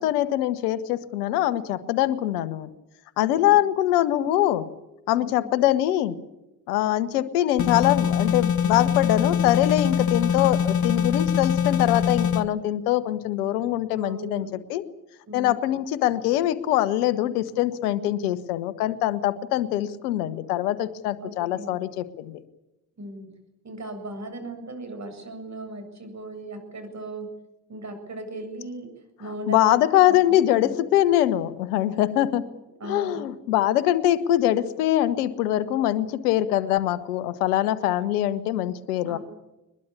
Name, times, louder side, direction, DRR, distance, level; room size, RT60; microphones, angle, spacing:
voice 1, 0.0-2.7 3.2-4.7 5.1-6.2 6.7-14.8 15.3-22.4 29.5-32.4 32.8-39.2, left 13 dB, 70° left, 14 dB, 1.4 m, -23 dB
voice 2, 5.2-5.6 14.0-14.5 15.3-15.6 21.2-21.8 23.0-23.3 23.6-27.3 27.7-28.9 29.2-29.7 30.1-30.7 31.9-32.4 32.8-33.2 39.1-39.2, right 1 dB, 35° right, 6 dB, 7.7 m, -37 dB
sound 1, 7.6-12.4, left 8 dB, 40° left, 1.7 m, -23 dB
22.0 x 21.5 x 8.7 m, 0.96 s
figure-of-eight pair, 45°, 46 cm